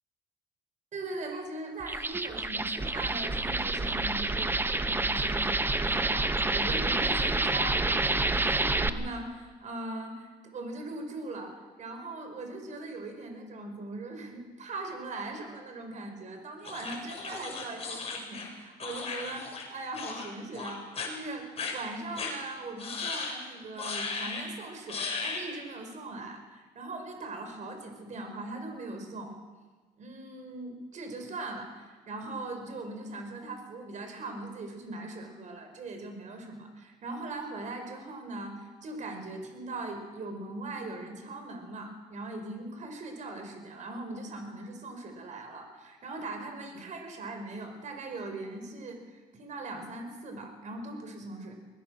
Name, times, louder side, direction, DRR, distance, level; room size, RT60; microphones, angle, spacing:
voice 1, 0.9-29.4 30.0-51.5, right 2 dB, 45° right, 5 dB, 5.0 m, -40 dB
sound 1, 1.8-8.9, right 2 dB, 10° right, 0.9 m, -28 dB
sound 2, 16.6-19.7 19.9-20.3 20.5-21.1 21.6-21.7 22.2-22.3 22.8-23.4 23.8-24.5 24.9-25.5, left 4 dB, 35° left, 5.3 m, -36 dB
21.5 x 19.0 x 6.5 m, 1.3 s
cardioid pair, 110°, 17 cm